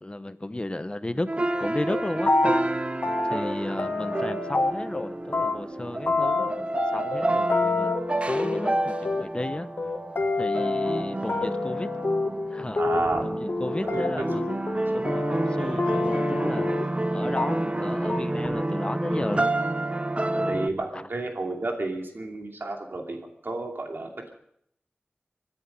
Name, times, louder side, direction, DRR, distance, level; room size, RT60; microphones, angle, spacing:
voice 1, 0.0-1.3 1.6-2.3 3.3-7.9 8.3-9.7 10.4-11.9 12.5-12.8 13.2-14.6 14.9-16.7 17.1-19.5, left 1 dB, 30° left, 12 dB, 0.8 m, -33 dB
sound 1, 1.3-20.7, right 1 dB, 35° right, 0.8 m, -29 dB
sound 2, 1.5-1.6 1.9-2.7 3.0-5.0 5.3-17.1 17.4-17.8 18.1-18.5, left 3 dB, 70° left, 1.8 m, -28 dB
voice 2, 12.8-13.2 13.8-14.1 20.4-24.3, right 2 dB, 85° right, 2 dB, 2.6 m, -31 dB
25.0 x 9.9 x 5.4 m, 0.73 s
wide cardioid pair, 65°, 4 cm